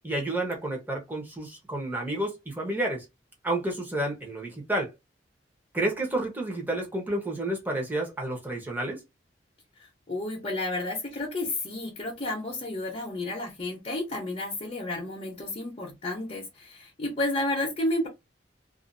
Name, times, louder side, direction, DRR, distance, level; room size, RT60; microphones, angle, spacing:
voice 1, 0.0-3.1 3.4-4.9 5.7-9.0, right 1 dB, 10° right, 0.9 m, -30 dB
voice 2, 9.8-18.1, left 2 dB, 35° left, 0.8 m, -31 dB
2.5 x 2.4 x 2.5 m
head